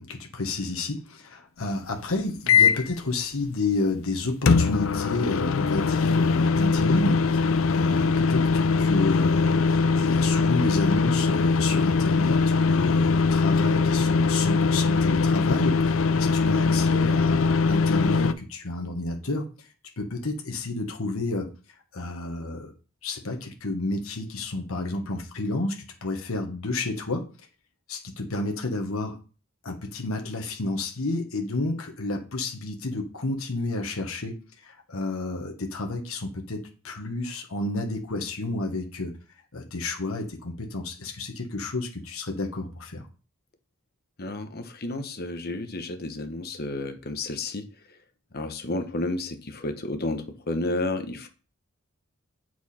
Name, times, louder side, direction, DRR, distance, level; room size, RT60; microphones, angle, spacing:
voice 1, 0.0-21.5 21.9-22.7 23.0-27.2 27.9-29.2 29.6-39.1 39.5-43.1, left 2 dB, 90° left, 3 dB, 1.2 m, -30 dB
sound 1, 2.5-2.9 4.5-18.3, left 4 dB, 70° left, 0.5 m, -22 dB
voice 2, 44.2-47.7 48.3-51.3, left 2 dB, 50° left, 8 dB, 1.0 m, -31 dB
8.3 x 4.6 x 4.2 m, 0.35 s
head